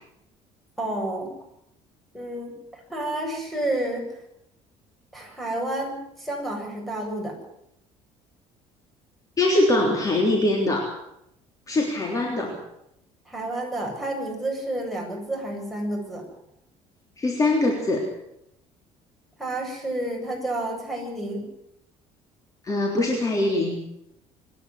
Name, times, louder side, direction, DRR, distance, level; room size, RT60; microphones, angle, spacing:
voice 1, 0.8-1.3 2.1-4.1 5.1-7.4 13.3-16.2 19.4-21.5, right 1 dB, ahead, 1 dB, 7.7 m, -30 dB
voice 2, 9.4-10.9 11.7-12.5 17.2-18.1 22.6-23.8, left 2 dB, 25° left, 1 dB, 3.5 m, -22 dB
26.0 x 10.5 x 9.6 m, 0.80 s
cardioid pair, 115°, 13 cm